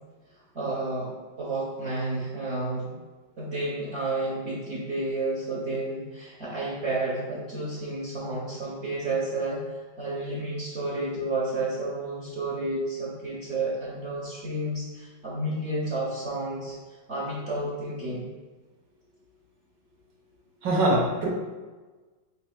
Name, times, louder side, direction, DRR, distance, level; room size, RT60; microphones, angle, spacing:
voice 1, 0.5-1.1 1.4-3.0 3.4-9.6 10.0-16.8 17.1-18.3, right 2 dB, 50° right, -6 dB, 0.9 m, -31 dB
voice 2, 20.6-21.3, right 1 dB, 75° right, -2 dB, 1.7 m, -23 dB
5.6 x 4.2 x 2.2 m, 1.3 s
omnidirectional pair, 2.0 m